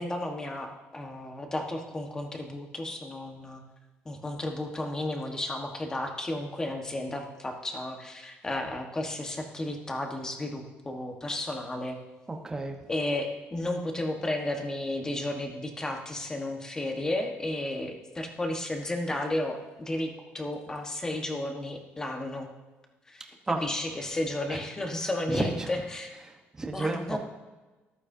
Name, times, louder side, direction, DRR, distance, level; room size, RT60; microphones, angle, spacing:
voice 1, 0.0-3.6 4.0-12.0 12.9-22.5 23.1-23.2 23.6-26.1 26.7-27.2, left 1 dB, 15° left, 3 dB, 1.4 m, -33 dB
voice 2, 12.3-12.9 23.5-23.6 24.5-24.6 25.0-25.7 26.2-27.2, right 2 dB, 15° right, 3 dB, 1.1 m, -32 dB
14.0 x 12.0 x 2.8 m, 1.2 s
cardioid pair, 155°, 4 cm